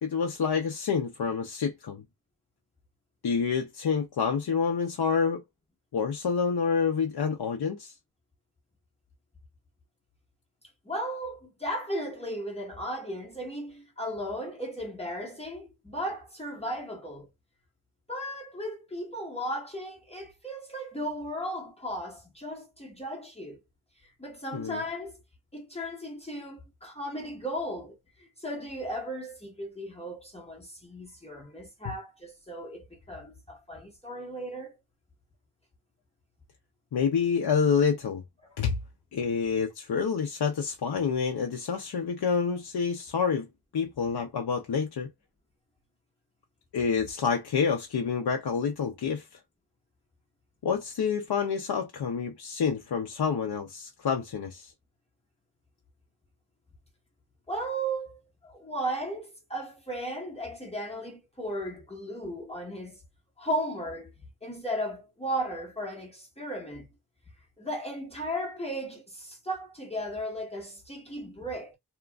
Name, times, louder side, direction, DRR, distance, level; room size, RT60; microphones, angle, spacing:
voice 1, 0.0-2.0 3.2-5.4 5.9-7.9 24.5-24.8 36.9-38.2 38.6-38.8 39.1-43.5 43.7-45.1 46.7-49.3 50.6-54.7, left 6 dB, 75° left, 0.6 m, -28 dB
voice 2, 10.8-17.3 18.1-23.6 24.0-25.2 25.5-34.7 38.4-38.5 57.5-63.0 63.4-64.1 64.4-66.8 67.6-71.7, equal, 15° left, 1.0 m, -36 dB
2.9 x 2.4 x 2.3 m
wide cardioid pair, 60°, 39 cm